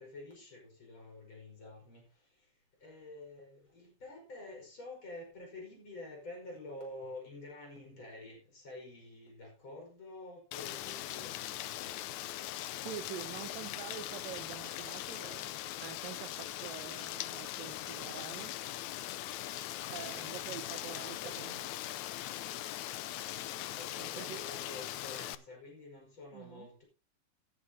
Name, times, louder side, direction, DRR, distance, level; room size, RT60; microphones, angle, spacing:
voice 1, 0.0-12.0 19.5-21.6 23.4-26.8, left 2 dB, 35° left, 5.8 m, -49 dB
Rain, 10.5-25.4, left 14 dB, 85° left, 1.6 m, -41 dB
voice 2, 12.8-15.5 15.8-18.5 19.9-21.7 24.0-24.5 26.3-26.7, right 12 dB, 80° right, 2.4 m, -46 dB
17.0 x 9.6 x 2.8 m
omnidirectional pair, 4.1 m